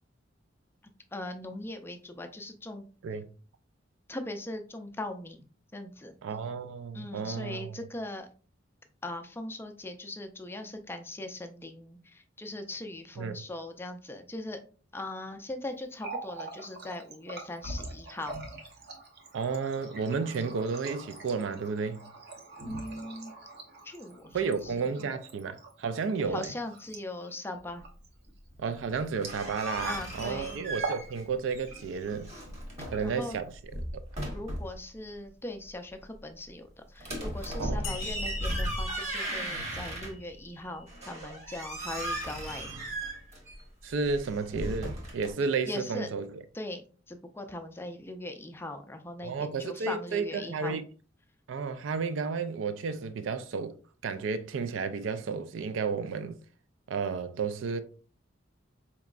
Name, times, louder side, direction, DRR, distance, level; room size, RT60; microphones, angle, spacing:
voice 1, 1.1-2.8 4.1-5.4 5.7-6.2 6.9-8.3 9.0-14.6 14.9-18.3 22.6-23.3 23.8-25.1 26.3-27.8 29.8-30.5 32.8-33.4 34.3-42.8 45.7-46.1 46.5-50.8, left 1 dB, 10° left, 0.4 m, -40 dB
voice 2, 6.2-7.8 13.2-13.4 19.3-22.1 24.3-26.5 28.6-32.3 32.9-33.5 37.6-38.0 43.8-46.4 49.2-50.8 51.5-53.7 54.0-56.4 56.9-57.8, right 5 dB, 80° right, 0.4 m, -32 dB
Water tap faucet, 15.8-29.9 30.1-30.3 30.7-31.1 31.4-32.1 32.7-33.5, right 3 dB, 60° right, 0.8 m, -43 dB
sound 1, 29.2-31.3 31.5-33.1 33.6-34.8 37.0-40.4 40.9-45.3, right 1 dB, 35° right, 1.1 m, -36 dB
sound 2, 37.8-41.2, left 4 dB, 75° left, 0.4 m, -43 dB
4.4 x 3.0 x 2.4 m
head